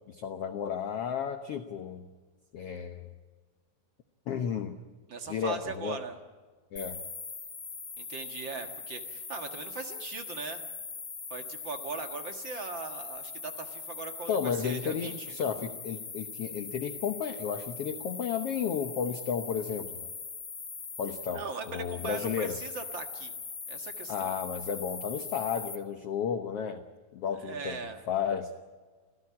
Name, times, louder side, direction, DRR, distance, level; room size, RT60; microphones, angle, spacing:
voice 1, 0.1-2.1 2.5-3.1 4.3-4.8 5.3-6.0 6.7-7.0 14.3-20.1 21.0-22.5 24.1-26.8 27.1-27.8 28.1-28.5, left 7 dB, 70° left, 7 dB, 1.4 m, -33 dB
voice 2, 5.1-6.2 8.0-10.6 11.3-15.4 21.3-23.3 23.7-24.4 27.4-28.0, right 4 dB, 45° right, 6 dB, 1.7 m, -40 dB
sound 1, 6.8-25.8, left 5 dB, 40° left, 1.2 m, -41 dB
26.5 x 16.5 x 8.6 m, 1.5 s
omnidirectional pair, 4.0 m